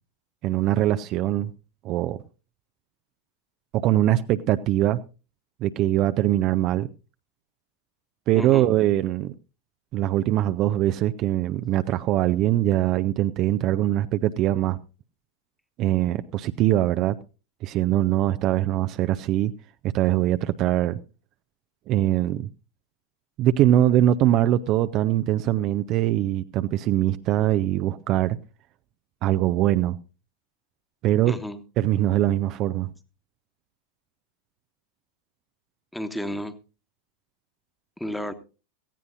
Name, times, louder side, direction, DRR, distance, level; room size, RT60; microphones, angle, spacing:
voice 1, 0.4-1.5 1.8-2.2 3.7-5.0 5.6-6.9 8.3-9.3 9.9-14.8 15.8-17.2 17.6-19.5 19.9-21.0 21.9-22.5 23.4-28.4 29.2-30.0 31.0-31.3 31.8-32.9, right 13 dB, 35° right, 0.6 m, -22 dB
voice 2, 8.3-8.7 31.3-31.6 35.9-36.5 38.0-38.3, equal, 5° left, 1.3 m, -32 dB
17.5 x 15.0 x 2.6 m
figure-of-eight pair, 90°, 0 cm